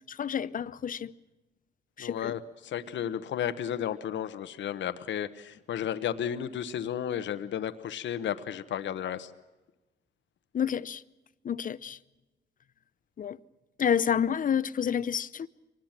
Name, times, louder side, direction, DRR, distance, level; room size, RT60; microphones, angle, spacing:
voice 1, 0.1-1.1 2.0-2.3 10.5-11.0 11.4-12.0 13.2-13.4 13.8-15.5, left 8 dB, 45° left, 0.8 m, -29 dB
voice 2, 2.0-9.3, left 9 dB, 70° left, 1.2 m, -33 dB
24.0 x 20.0 x 7.4 m
cardioid pair, 90°, 20 cm